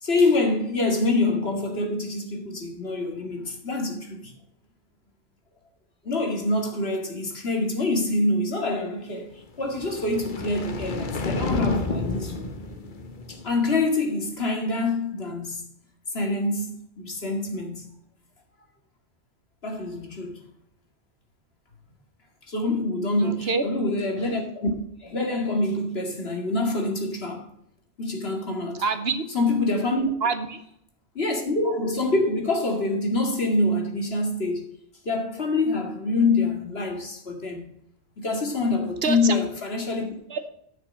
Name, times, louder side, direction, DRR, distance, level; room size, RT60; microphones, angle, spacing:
voice 1, 0.0-4.3 6.0-9.3 9.6-12.5 13.3-15.7 16.1-17.9 19.6-20.4 22.5-24.7 25.0-27.5 28.0-28.8 29.3-30.1 31.1-34.7 35.0-37.7 38.2-40.1, left 2 dB, 65° left, 2.4 m, -26 dB
sound 1, 9.6-13.8, left 2 dB, 50° left, 1.2 m, -30 dB
voice 2, 23.2-23.6 28.8-29.2 30.2-30.6 39.0-39.4 40.3-40.5, right 4 dB, 65° right, 1.2 m, -26 dB
9.5 x 6.7 x 6.3 m
omnidirectional pair, 1.1 m